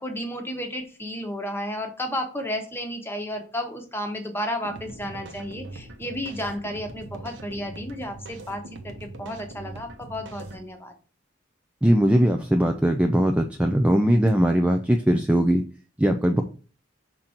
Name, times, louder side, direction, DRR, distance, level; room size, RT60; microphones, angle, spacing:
voice 1, 0.0-10.9, equal, 10° left, 5 dB, 1.0 m, -32 dB
sound 1, 4.6-10.6, right 2 dB, 70° right, 1.0 m, -41 dB
voice 2, 11.8-15.6 16.0-16.4, equal, 5° right, 4 dB, 0.4 m, -20 dB
6.0 x 3.8 x 4.4 m, 0.38 s
head